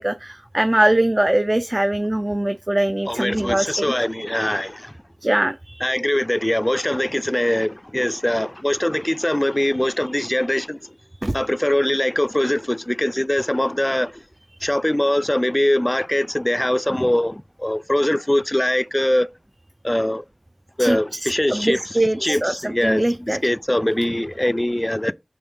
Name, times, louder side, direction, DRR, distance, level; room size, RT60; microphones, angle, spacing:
voice 1, 0.0-3.9 5.2-6.0 11.2-11.4 20.8-23.4, right 1 dB, 30° right, 0.5 m, -22 dB
voice 2, 3.1-4.9 5.8-10.8 11.3-14.1 14.6-19.3 19.8-20.2 20.8-21.8 22.2-25.1, left 1 dB, 20° left, 0.4 m, -22 dB
5.4 x 3.8 x 5.5 m
wide cardioid pair, 40°, 0 cm